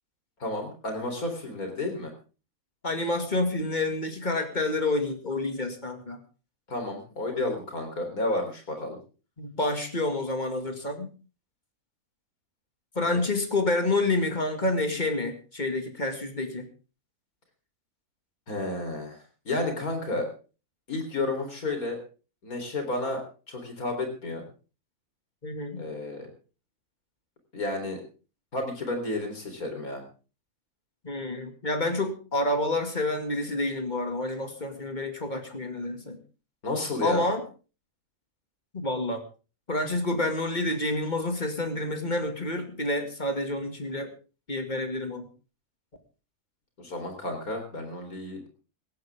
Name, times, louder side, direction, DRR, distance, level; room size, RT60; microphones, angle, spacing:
voice 1, 0.4-2.1 6.7-9.0 13.0-13.2 18.5-19.2 19.5-20.3 20.9-22.0 22.4-24.4 25.8-26.3 27.5-28.0 28.5-30.0 36.6-37.3 46.8-48.4, left 2 dB, 90° left, 5 dB, 4.3 m, -31 dB
voice 2, 2.8-6.2 9.4-11.1 13.0-16.6 25.4-25.9 31.0-36.2 37.0-37.4 38.7-39.2 39.7-44.1 44.5-45.3, left 2 dB, 30° left, 6 dB, 2.4 m, -28 dB
17.5 x 15.0 x 3.6 m, 0.35 s
omnidirectional pair, 1.5 m